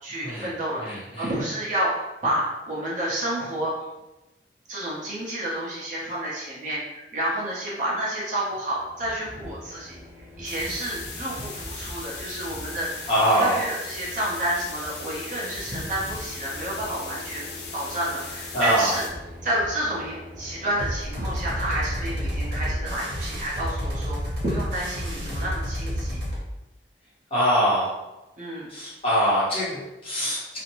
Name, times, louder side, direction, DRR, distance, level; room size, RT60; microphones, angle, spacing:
voice 1, 0.0-3.7 4.7-10.0 10.4-19.0 19.4-26.2 28.4-28.7, right 1 dB, 45° right, -6 dB, 0.8 m, -30 dB
voice 2, 0.8-1.3 13.1-13.6 18.5-18.9 27.3-28.0 28.7-30.6, equal, 35° left, -9 dB, 1.1 m, -23 dB
sound 1, 8.7-23.0, equal, 10° right, 0.4 m, -43 dB
sound 2, 10.4-19.1, left 4 dB, 80° left, 0.5 m, -39 dB
sound 3, 20.8-26.4, equal, 75° right, 1.0 m, -30 dB
2.5 x 2.1 x 3.0 m, 1.0 s
head